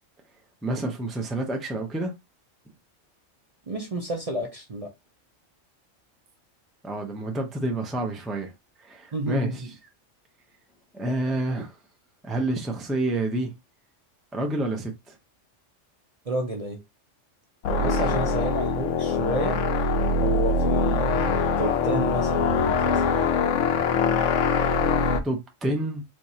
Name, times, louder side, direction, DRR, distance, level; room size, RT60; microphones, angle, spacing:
voice 1, 0.6-2.1 6.8-8.5 8.8-9.5 10.9-11.7 12.2-13.5 14.3-15.2 17.6-17.9 25.2-26.0, right 2 dB, ahead, 0.5 m, -28 dB
voice 2, 3.7-4.9 9.1-9.7 16.3-16.8 17.8-19.6 20.2-23.3 23.8-23.9, right 2 dB, 35° right, 0.7 m, -31 dB
sound 1, 17.6-25.2, left 4 dB, 90° left, 1.0 m, -23 dB
4.7 x 2.5 x 2.8 m
omnidirectional pair, 1.3 m